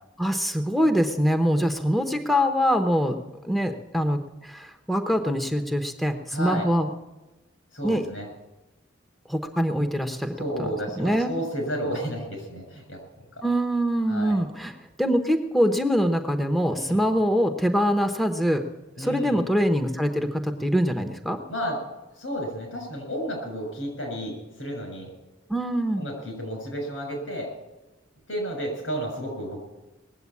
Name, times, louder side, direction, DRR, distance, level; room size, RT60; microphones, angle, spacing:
voice 1, 0.2-6.9 7.8-8.0 9.3-10.7 11.0-11.3 13.4-14.7 15.0-18.6 19.0-21.4 25.5-26.0, equal, ahead, 5 dB, 0.8 m, -24 dB
voice 2, 6.3-6.7 7.7-8.3 10.4-13.0 14.1-14.4 16.7-17.0 19.0-19.4 21.5-21.8 22.2-25.1 26.0-27.5 28.3-29.6, equal, 80° left, 3 dB, 6.6 m, -32 dB
19.5 x 7.9 x 8.4 m, 1.1 s
head